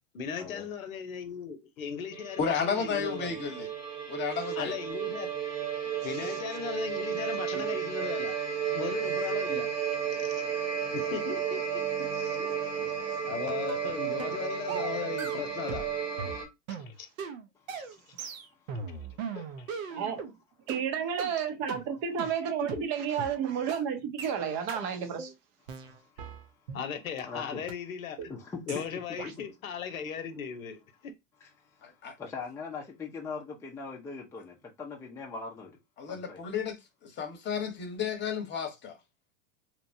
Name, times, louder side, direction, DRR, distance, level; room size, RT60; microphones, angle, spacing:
voice 1, 0.1-3.4 4.6-5.3 6.0-8.3 8.7-9.7 10.2-10.4 10.9-12.4 13.3-15.9 16.9-17.1 19.3-19.8 26.7-28.2 28.7-31.1, left 7 dB, 90° left, 0.8 m, -37 dB
sound 1, 2.1-16.5, right 8 dB, 10° right, 0.9 m, -33 dB
voice 2, 2.4-3.7 4.1-4.8 31.8-32.1 36.0-39.0, left 6 dB, 25° left, 0.9 m, -33 dB
voice 3, 12.4-13.3 17.5-17.8 18.3-18.8 25.7-26.7 27.2-27.6 28.3-29.3 31.4-35.8 36.1-36.4, left 4 dB, 5° left, 0.4 m, -43 dB
sound 2, 13.7-13.9 14.2-14.4 14.7-15.9 16.2-20.3 20.7-20.8 21.2-21.3 21.7-21.8 22.2-22.3 22.7-22.8 23.2-23.3 23.7-23.8 24.2-24.3 24.7-24.8 25.2-25.3 25.7-26.9 27.2-27.3 27.7-27.8 28.2-28.4 28.7-28.8 29.2-29.3, right 5 dB, 75° right, 0.7 m, -39 dB
voice 4, 19.9-20.4 20.7-25.3, right 7 dB, 40° right, 0.6 m, -31 dB
3.0 x 2.1 x 2.6 m
hypercardioid pair, 105°, 40 cm